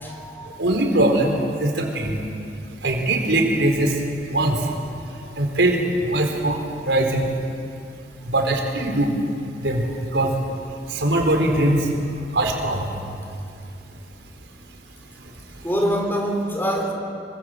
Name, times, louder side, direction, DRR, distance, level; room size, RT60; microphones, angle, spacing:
voice 1, 0.0-0.6 15.6-16.9, equal, 10° left, 1 dB, 4.3 m, -25 dB
voice 2, 0.6-2.2 2.8-4.0 4.3-4.6 5.4-5.8 6.0-6.6 6.9-7.2 8.3-9.1 9.6-9.9 10.1-10.3 10.9-11.9 12.3-12.9, right 1 dB, 85° right, 2 dB, 4.4 m, -21 dB
26.5 x 25.0 x 8.0 m, 2.5 s
head